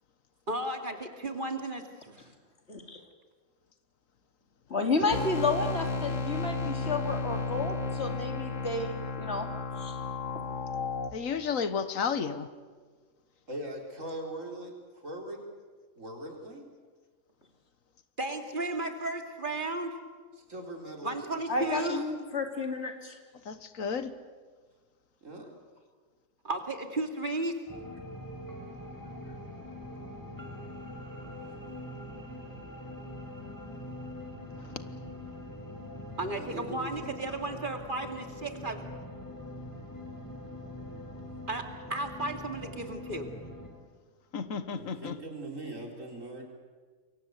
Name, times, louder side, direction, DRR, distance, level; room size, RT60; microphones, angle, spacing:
voice 1, 0.5-2.2 18.2-20.0 21.0-22.0 26.4-27.6 36.2-38.9 41.5-43.3, right 2 dB, 40° right, 5 dB, 2.6 m, -34 dB
voice 2, 2.7-3.0 4.7-9.5 9.8-10.0 21.5-23.2, left 3 dB, 55° left, 4 dB, 2.9 m, -31 dB
sound 1, 5.1-11.1, left 4 dB, 70° left, 1.9 m, -33 dB
voice 3, 11.1-12.5 23.4-24.2 34.6-34.8 44.3-45.2, left 6 dB, 85° left, 12 dB, 1.6 m, -33 dB
voice 4, 13.5-15.4 16.0-16.6 20.4-21.3 21.5-21.8 25.2-25.5 36.4-37.0 44.7-46.4, right 1 dB, 70° right, 2 dB, 4.5 m, -41 dB
sound 2, 27.7-43.7, left 1 dB, 15° left, 3.9 m, -43 dB
27.5 x 23.0 x 8.2 m, 1.5 s
omnidirectional pair, 1.4 m